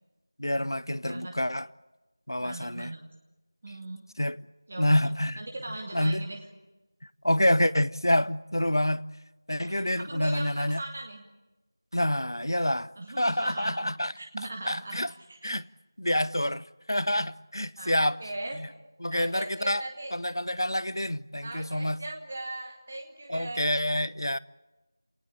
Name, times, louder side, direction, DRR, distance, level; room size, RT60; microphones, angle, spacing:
voice 1, 0.4-1.7 2.3-2.9 4.2-4.4 4.8-5.4 5.9-6.2 7.2-9.0 9.5-10.8 11.9-12.9 13.2-14.1 14.6-15.1 15.4-15.7 16.0-18.2 18.6-18.7 19.0-19.8 20.1-22.0 23.3-24.4, left 1 dB, 75° left, 0.9 m, -27 dB
voice 2, 2.4-3.0 3.6-4.0 4.7-6.5 9.6-11.2 13.0-15.0 15.3-15.5 17.8-18.6 19.1-20.2 21.4-23.7, right 2 dB, 10° right, 1.0 m, -39 dB
30.0 x 19.0 x 8.7 m
figure-of-eight pair, 180°, 2 cm